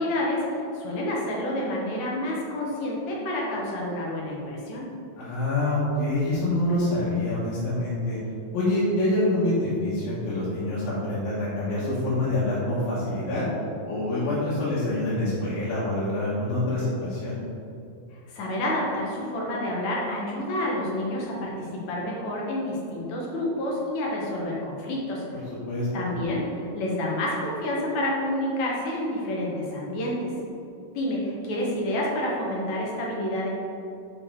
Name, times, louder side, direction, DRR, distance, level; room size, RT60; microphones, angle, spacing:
voice 1, 0.0-4.9 18.3-25.2 25.9-30.3 31.0-33.5, left 1 dB, 65° left, -3 dB, 2.2 m, -29 dB
voice 2, 5.2-8.2 8.5-13.4 13.9-17.4 25.7-25.9, left 1 dB, 85° left, -10 dB, 3.0 m, -26 dB
6.5 x 4.3 x 4.5 m, 2.6 s
omnidirectional pair, 4.0 m